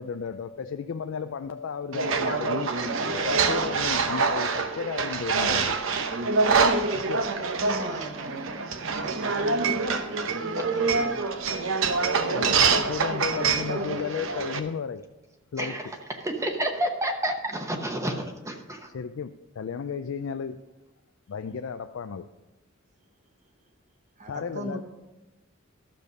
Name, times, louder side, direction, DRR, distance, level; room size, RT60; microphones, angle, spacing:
voice 1, 0.0-2.7 3.1-5.8 6.9-7.3 12.3-15.1 15.5-15.8 18.9-20.6 21.3-22.3 24.3-24.8, left 6 dB, 70° left, 0.4 m, -33 dB
sound 1, 1.9-14.6, right 4 dB, 75° right, 0.8 m, -25 dB
voice 2, 7.2-12.5 24.2-24.8, right 1 dB, 35° right, 1.2 m, -41 dB
voice 3, 15.6-15.9 16.2-18.9, right 1 dB, 15° right, 0.9 m, -29 dB
12.5 x 6.8 x 5.3 m
head